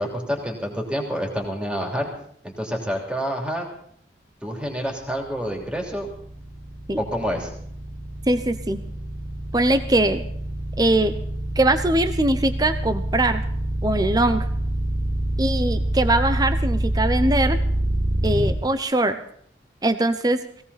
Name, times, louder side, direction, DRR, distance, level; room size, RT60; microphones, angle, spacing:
voice 1, 0.0-2.1 2.4-3.6 4.4-6.1 7.0-7.5, equal, 5° right, 1 dB, 3.1 m, -28 dB
sound 1, 5.3-18.5, right 1 dB, 70° right, 4.9 m, -26 dB
voice 2, 8.3-8.8 9.5-10.2 10.8-11.1 11.6-13.4 13.8-14.5 15.4-17.6 18.2-19.2 19.8-20.4, right 1 dB, 20° right, 10 dB, 0.9 m, -21 dB
18.0 x 17.0 x 4.2 m, 0.65 s
head